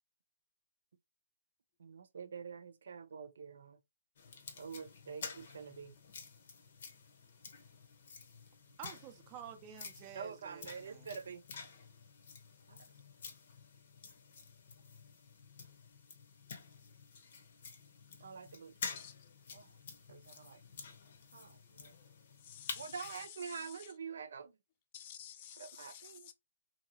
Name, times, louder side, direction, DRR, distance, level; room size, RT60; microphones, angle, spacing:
voice 1, 1.8-3.8 4.6-5.9 10.1-11.4 12.7-12.8 18.2-18.7 19.5-19.7 20.1-20.6 21.3-21.9 22.7-24.5 25.6-26.3, right 6 dB, 70° right, 0.5 m, -46 dB
sound 1, 4.2-23.3, left 5 dB, 55° left, 0.8 m, -50 dB
voice 2, 8.8-11.1, right 9 dB, 25° right, 0.5 m, -50 dB
voice 3, 22.4-23.9 24.9-26.3, left 9 dB, 35° left, 0.4 m, -51 dB
2.8 x 2.7 x 2.8 m
hypercardioid pair, 160°, 0 cm